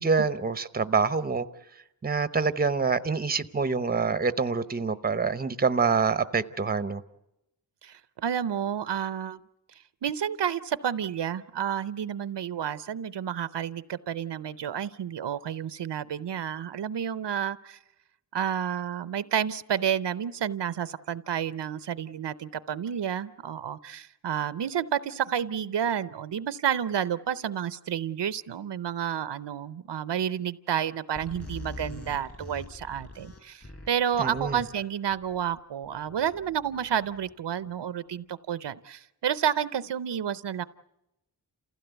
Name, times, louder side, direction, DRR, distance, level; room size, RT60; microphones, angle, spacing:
voice 1, 0.0-1.5 2.0-7.0 34.2-34.6, right 5 dB, 20° right, 0.8 m, -26 dB
voice 2, 7.8-9.4 10.0-17.8 18.3-40.6, right 9 dB, 80° right, 0.7 m, -30 dB
sound 1, 31.2-37.6, left 2 dB, 35° left, 5.1 m, -44 dB
28.5 x 16.0 x 8.1 m
wide cardioid pair, 100°, 42 cm